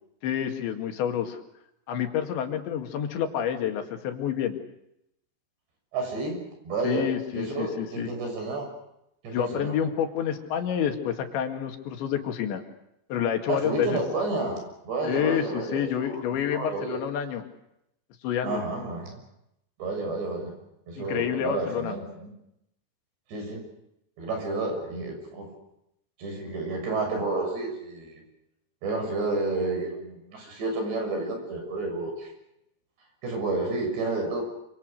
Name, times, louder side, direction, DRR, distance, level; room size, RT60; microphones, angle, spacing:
voice 1, 0.2-1.4 1.9-4.6 6.8-8.1 9.3-12.6 13.1-14.0 15.0-17.4 18.2-18.6 21.0-22.0, left 9 dB, 80° left, 5 dB, 4.5 m, -28 dB
voice 2, 5.9-6.4 6.7-7.1 7.3-8.7 9.2-9.8 13.5-16.2 16.5-17.0 18.4-19.2 19.8-20.5 20.9-22.3 23.3-23.6 24.2-25.5 26.2-28.2 28.8-32.3 33.2-34.4, right 3 dB, 70° right, 3 dB, 8.8 m, -30 dB
27.5 x 26.0 x 6.7 m, 0.81 s
omnidirectional pair, 5.1 m